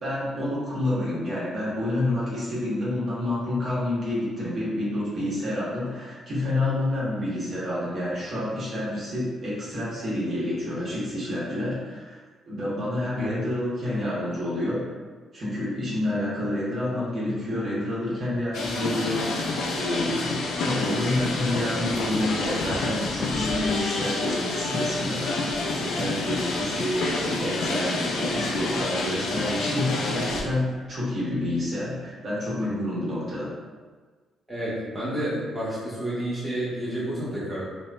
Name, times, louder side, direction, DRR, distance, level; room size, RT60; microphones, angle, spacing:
voice 1, 0.0-12.2 12.5-14.8 15.3-25.3 25.8-33.5, left 1 dB, 50° right, -8 dB, 1.2 m, -28 dB
sound 1, 18.5-30.4, left 3 dB, 80° left, 0.4 m, -28 dB
voice 2, 34.5-37.6, right 1 dB, 5° right, -10 dB, 1.1 m, -30 dB
3.3 x 2.6 x 2.2 m, 1.4 s
cardioid pair, 90°, 0 cm